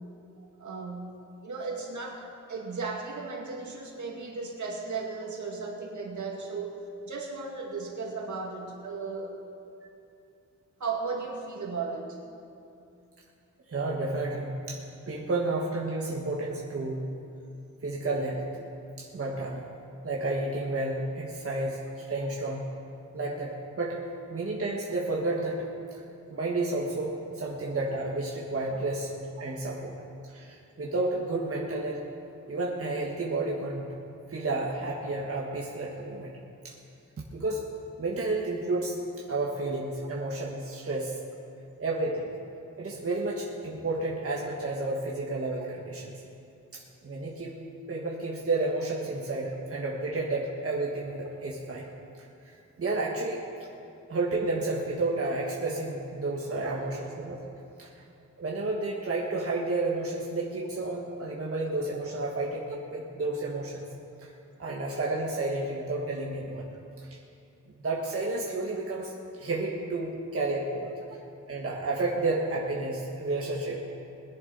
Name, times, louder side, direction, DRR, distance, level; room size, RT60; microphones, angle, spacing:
voice 1, 0.6-1.1 1.4-9.3 10.8-12.2 56.6-57.0, right 4 dB, 70° right, 0 dB, 2.0 m, -36 dB
voice 2, 13.7-14.8 15.1-17.1 17.8-18.6 19.0-19.6 20.0-22.6 23.1-24.0 24.3-25.6 26.3-29.1 29.4-29.9 30.3-32.0 32.5-33.9 34.3-36.3 36.6-36.7 37.3-37.6 38.0-39.0 39.3-41.2 41.8-42.3 42.8-46.1 46.7-47.6 47.9-51.9 52.8-53.4 54.1-57.4 57.8-57.9 58.4-63.9 64.2-64.3 64.6-66.6 67.8-69.1 69.4-70.9 71.5-73.9, right 2 dB, 45° right, -3 dB, 1.4 m, -31 dB
21.0 x 10.5 x 4.0 m, 2.6 s
wide cardioid pair, 140°, 31 cm